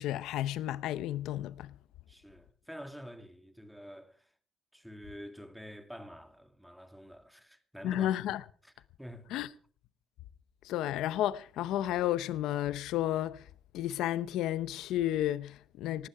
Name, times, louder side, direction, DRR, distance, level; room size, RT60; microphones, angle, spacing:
voice 1, 0.0-1.7 7.8-8.4 9.3-9.5 10.6-13.4 13.7-16.1, left 13 dB, 90° left, 0.7 m, -32 dB
voice 2, 2.1-4.3 4.7-8.1 8.6-9.3, equal, ahead, 2.6 m, -48 dB
19.0 x 15.0 x 4.8 m
cardioid pair, 90°, 0 cm